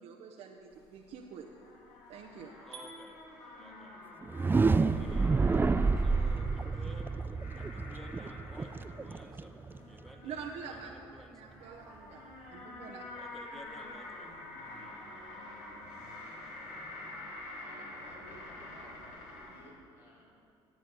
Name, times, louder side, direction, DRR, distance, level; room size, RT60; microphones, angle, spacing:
voice 1, 0.0-1.5 2.1-2.8 10.2-10.9 11.3-12.2 12.5-13.0, right 6 dB, 60° right, 0 dB, 0.8 m, -45 dB
sound 1, 0.6-19.7, left 2 dB, 60° left, 2.8 m, -48 dB
voice 2, 2.7-3.2 3.6-4.0 4.9-5.5 6.0-11.5 13.1-15.0 15.3-15.5, equal, ahead, 2 dB, 1.5 m, -54 dB
sound 2, 4.2-10.1, right 4 dB, 15° right, 0.3 m, -29 dB
voice 3, 17.6-20.4, left 1 dB, 85° left, -4 dB, 2.8 m, -56 dB
17.0 x 7.8 x 4.0 m, 2.5 s
hypercardioid pair, 65°, 13 cm